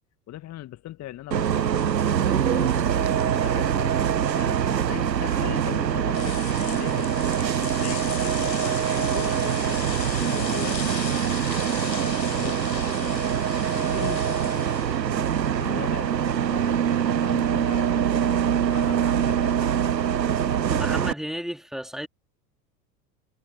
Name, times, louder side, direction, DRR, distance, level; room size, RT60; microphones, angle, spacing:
voice 1, 0.3-3.9 4.3-7.2 7.6-11.2 11.8-13.4 13.7-19.7, left 14 dB, 30° left, 1.8 m, -40 dB
Bus, 1.3-21.1, right 9 dB, 85° right, 0.6 m, -24 dB
sound 1, 6.1-15.9, left 6 dB, 85° left, 0.9 m, -37 dB
voice 2, 20.7-22.1, equal, ahead, 3.7 m, -33 dB
figure-of-eight pair, 80°, 49 cm